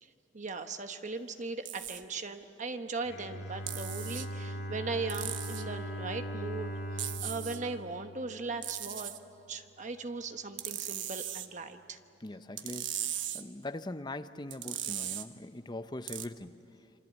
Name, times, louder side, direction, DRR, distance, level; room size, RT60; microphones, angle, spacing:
voice 1, 0.0-9.1 9.5-12.0, right 3 dB, 40° right, 1.2 m, -39 dB
sound 1, 1.7-2.0 3.7-4.3 5.1-5.7 7.0-7.6 8.6-9.2 10.6-11.5 12.6-13.4 14.5-15.3 16.1-16.3, right 11 dB, 70° right, 1.1 m, -38 dB
Bowed string instrument, 3.0-9.0, equal, 80° left, 2.5 m, -40 dB
voice 2, 12.2-16.6, left 2 dB, 20° left, 0.7 m, -41 dB
27.5 x 25.5 x 8.4 m
head